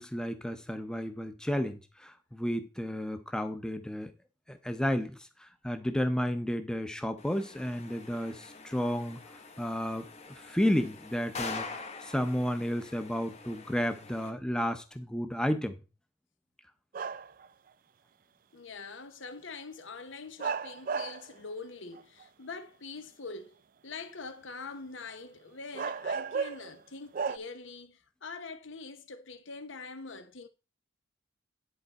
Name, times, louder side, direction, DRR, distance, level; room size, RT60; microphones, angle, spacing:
voice 1, 0.0-4.1 4.5-5.2 5.6-9.2 9.6-10.1 10.4-11.7 12.0-15.8, equal, 5° left, 0.7 m, -32 dB
sound 1, 7.2-14.3, left 4 dB, 35° left, 1.0 m, -44 dB
sound 2, 16.9-17.5 19.2-19.3 20.4-21.3 22.0-22.5 25.1-25.2 25.7-26.8 27.1-27.4, right 5 dB, 45° right, 0.3 m, -34 dB
voice 2, 18.5-23.6 23.8-30.5, left 4 dB, 75° left, 1.0 m, -44 dB
10.5 x 4.6 x 4.1 m
head